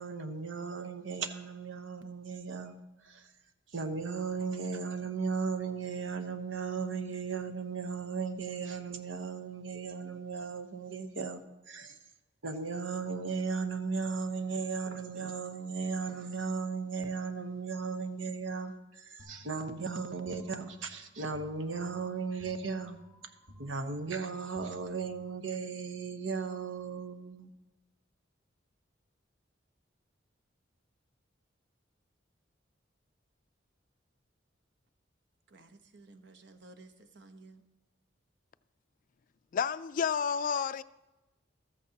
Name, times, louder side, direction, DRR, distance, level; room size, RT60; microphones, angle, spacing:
voice 1, 0.0-3.3 3.7-12.0 12.4-23.0 23.6-27.5, right 5 dB, 85° right, 1.0 m, -36 dB
sound 1, 19.2-25.6, equal, 45° right, 3.9 m, -57 dB
voice 2, 35.5-37.6, right 2 dB, 65° right, 1.0 m, -55 dB
voice 3, 39.5-40.8, left 6 dB, 45° left, 0.3 m, -30 dB
14.5 x 13.5 x 2.9 m
head